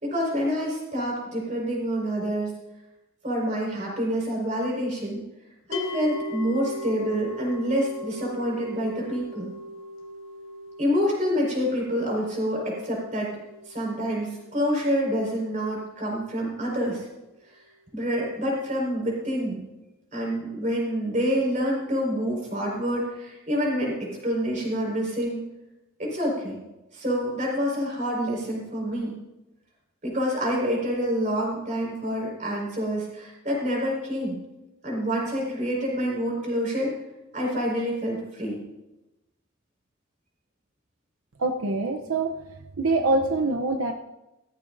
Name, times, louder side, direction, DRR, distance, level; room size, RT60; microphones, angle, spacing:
voice 1, 0.0-2.5 3.2-5.2 5.7-9.5 10.8-13.3 13.7-17.0 17.9-19.6 20.1-25.4 26.0-26.6 26.9-29.1 30.0-34.4 34.8-36.9 37.3-38.6, equal, 35° right, -2 dB, 4.8 m, -27 dB
sound 1, 5.7-16.9, left 1 dB, 70° left, 1.3 m, -40 dB
voice 2, 41.4-42.4 42.8-43.9, right 2 dB, 90° right, 4 dB, 0.7 m, -24 dB
15.5 x 14.5 x 2.6 m, 0.98 s
head